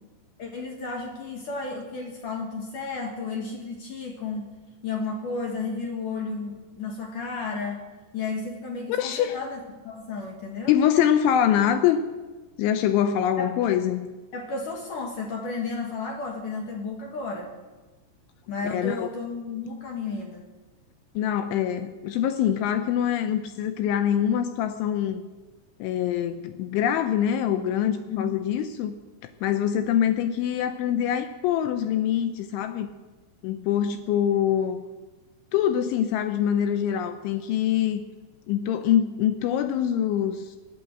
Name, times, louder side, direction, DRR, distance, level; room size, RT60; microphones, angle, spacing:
voice 1, 0.4-4.5 4.8-7.9 8.1-9.6 9.8-10.8 13.4-13.5 14.3-17.5 18.5-20.4 28.1-28.3, left 4 dB, 65° left, 1 dB, 2.1 m, -33 dB
voice 2, 9.0-9.4 10.7-12.1 12.6-14.1 18.6-19.1 21.2-25.2 25.8-28.9 29.2-32.9 33.4-34.8 35.5-38.0 38.5-40.6, left 10 dB, 80° left, 9 dB, 2.9 m, -24 dB
19.5 x 8.9 x 7.7 m, 1.2 s
omnidirectional pair, 5.9 m